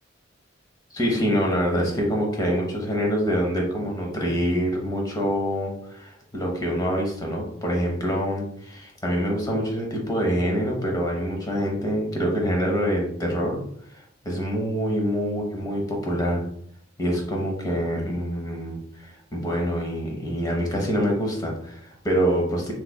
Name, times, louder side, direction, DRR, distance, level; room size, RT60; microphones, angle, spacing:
voice 1, 0.9-13.6 14.2-16.5 17.0-22.7, equal, 20° left, 0 dB, 0.8 m, -25 dB
3.4 x 3.1 x 2.2 m, 0.67 s
head